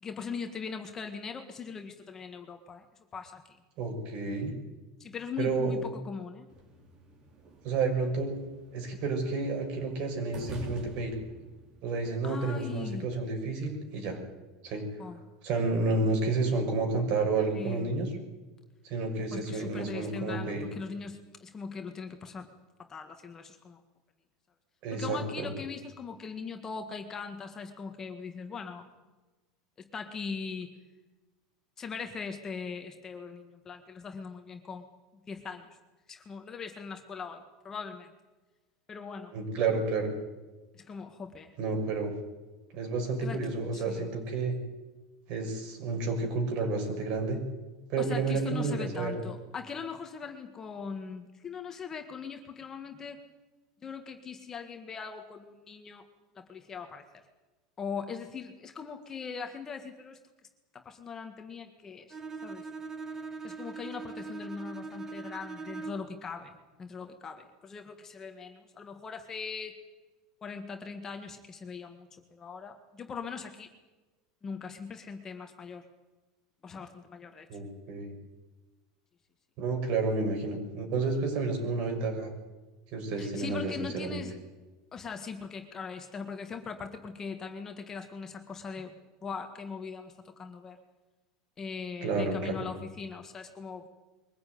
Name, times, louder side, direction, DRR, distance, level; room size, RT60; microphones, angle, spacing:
voice 1, 0.0-2.8 3.1-3.4 5.0-6.5 12.2-13.1 15.0-15.2 17.5-17.9 19.3-22.5 22.9-23.8 24.9-28.9 29.8-30.7 31.8-34.8 35.3-35.8 36.1-38.1 38.9-39.3 40.7-41.5 43.2-44.1 48.0-53.2 53.8-56.0 56.3-57.1 57.8-60.2 60.7-62.7 63.4-69.8 70.4-73.7 74.4-75.9 76.6-77.5 83.2-84.3 84.9-88.9 89.2-90.8 91.6-93.9, left 5 dB, 20° left, 5 dB, 1.7 m, -40 dB
voice 2, 3.8-4.5 5.4-5.9 7.6-8.4 8.7-11.1 11.8-14.2 14.6-14.8 15.4-18.1 18.8-20.6 24.8-25.5 39.3-40.1 41.6-42.1 42.7-44.5 45.3-47.4 47.9-49.2 77.5-78.1 79.6-82.3 82.9-84.2 92.0-92.7, right 3 dB, 50° right, 4 dB, 6.2 m, -30 dB
sound 1, 6.5-13.2, right 2 dB, 35° right, 4.3 m, -48 dB
Bowed string instrument, 62.1-66.2, right 4 dB, 15° right, 1.5 m, -41 dB
22.5 x 15.5 x 9.5 m, 1.2 s
supercardioid pair, 150°, 2 cm